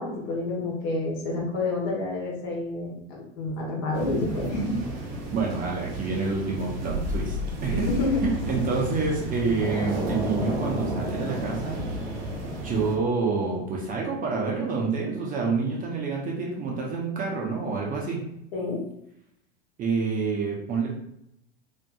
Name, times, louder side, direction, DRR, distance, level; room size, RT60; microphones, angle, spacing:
voice 1, 0.0-4.8 7.7-8.2 18.5-18.8, left 2 dB, 50° left, -2 dB, 1.1 m, -29 dB
sound 1, 3.9-13.0, right 1 dB, 60° right, 0.8 m, -31 dB
voice 2, 5.3-7.4 7.6-7.8 8.2-11.8 12.6-18.2 19.8-20.9, right 4 dB, 25° right, -2 dB, 0.6 m, -28 dB
2.8 x 2.5 x 2.3 m, 0.76 s
figure-of-eight pair, 85°, 32 cm